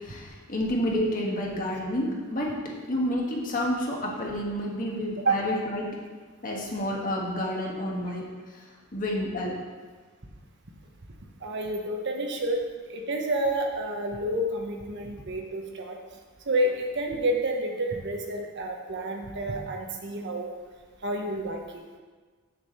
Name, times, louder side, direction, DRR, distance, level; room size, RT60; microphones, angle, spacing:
voice 1, 0.0-6.0 6.4-8.6 8.9-9.7, left 1 dB, 40° left, -2 dB, 1.4 m, -30 dB
voice 2, 11.4-16.0 16.5-20.5 21.0-21.8, right 1 dB, 50° right, 2 dB, 0.9 m, -29 dB
6.8 x 4.9 x 6.8 m, 1.4 s
head